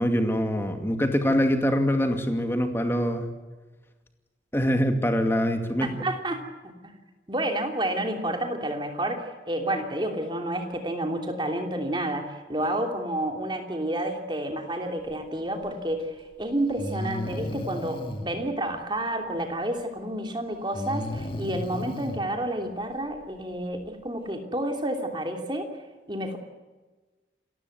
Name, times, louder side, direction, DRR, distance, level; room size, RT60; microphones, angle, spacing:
voice 1, 0.0-3.3 4.5-6.0, equal, 15° left, 6 dB, 2.3 m, -24 dB
voice 2, 5.8-6.4 6.8-6.9 7.3-16.1 16.4-25.7 26.1-26.4, right 1 dB, 25° right, 4 dB, 3.0 m, -30 dB
Breathing, 15.9-16.0 16.8-18.3 20.7-22.2, left 1 dB, 30° left, 2.2 m, -33 dB
28.0 x 15.0 x 8.1 m, 1.3 s
head